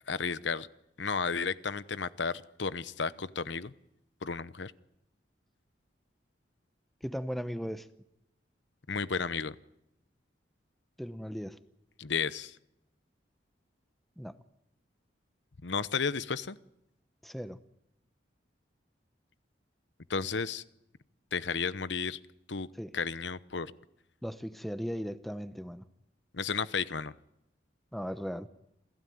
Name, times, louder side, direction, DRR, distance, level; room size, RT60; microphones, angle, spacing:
voice 1, 0.1-0.7 1.0-3.7 4.2-4.7 8.9-9.5 12.0-12.6 15.6-16.6 20.1-20.6 21.3-22.2 22.5-22.7 22.9-23.7 26.3-27.1, left 5 dB, 75° left, 16 dB, 0.9 m, -33 dB
voice 2, 7.0-7.9 11.0-11.6 14.2-14.3 17.2-17.6 22.8-22.9 24.2-25.8 27.9-28.5, equal, ahead, 11 dB, 0.9 m, -37 dB
28.5 x 16.5 x 9.4 m, 0.83 s
head